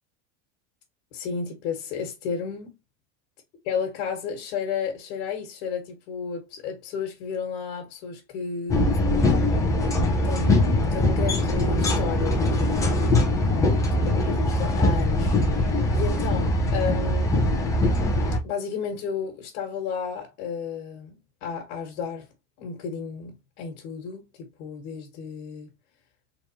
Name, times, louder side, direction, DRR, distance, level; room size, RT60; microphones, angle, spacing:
voice 1, 1.1-2.7 3.6-8.9 10.2-13.0 13.9-17.4 18.4-22.3 22.6-25.7, left 6 dB, 65° left, 1.5 m, -33 dB
sound 1, 8.7-18.4, left 1 dB, 10° left, 0.6 m, -22 dB
3.8 x 3.2 x 2.9 m
cardioid pair, 175°, 35 cm